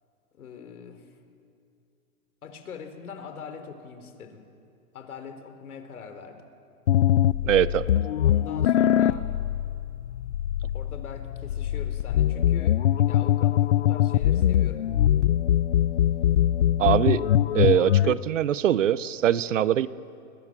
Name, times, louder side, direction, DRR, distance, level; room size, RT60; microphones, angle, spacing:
voice 1, 0.3-1.1 2.4-4.4 4.9-6.4 8.2-9.3 10.7-12.8 13.1-14.8, left 6 dB, 80° left, 7 dB, 3.9 m, -42 dB
sound 1, 6.9-18.1, left 11 dB, 50° left, 0.5 m, -23 dB
voice 2, 7.5-7.8 16.8-17.2 17.5-19.9, right 11 dB, 60° right, 18 dB, 0.9 m, -22 dB
29.0 x 21.5 x 7.4 m, 2.5 s
hypercardioid pair, 165°, 43 cm